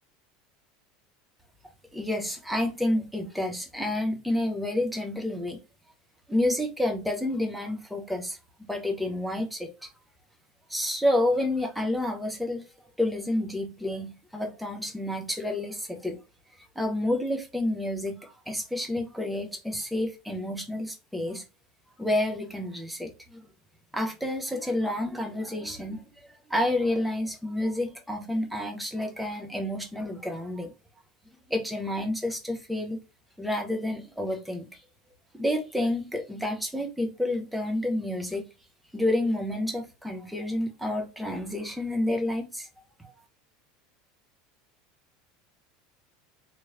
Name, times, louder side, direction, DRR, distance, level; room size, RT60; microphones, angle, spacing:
voice 1, 1.9-5.6 6.3-9.9 10.7-12.7 13.0-16.2 16.7-21.4 22.0-23.5 23.9-26.0 26.5-30.7 31.5-33.0 33.4-34.8 35.3-38.5 38.9-42.7 43.0-43.1, left 1 dB, ahead, 0.8 m, -29 dB
3.0 x 3.0 x 2.4 m
figure-of-eight pair, 75°, 0 cm